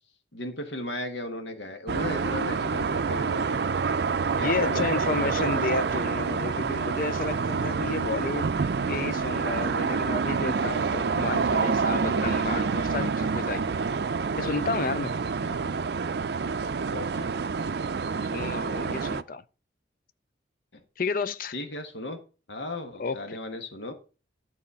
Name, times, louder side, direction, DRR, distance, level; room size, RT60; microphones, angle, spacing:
voice 1, 0.3-3.6 4.3-5.9 15.4-15.8 16.9-17.3 18.1-18.4 20.7-20.8 21.5-22.2 22.5-23.9, left 1 dB, 70° left, 1.4 m, -36 dB
sound 1, 1.9-19.2, right 5 dB, 55° right, 0.4 m, -27 dB
voice 2, 4.4-8.5 8.9-13.7 14.4-15.1 18.3-19.4 21.0-21.5 23.0-23.4, left 4 dB, 50° left, 0.5 m, -31 dB
11.0 x 4.2 x 5.5 m
head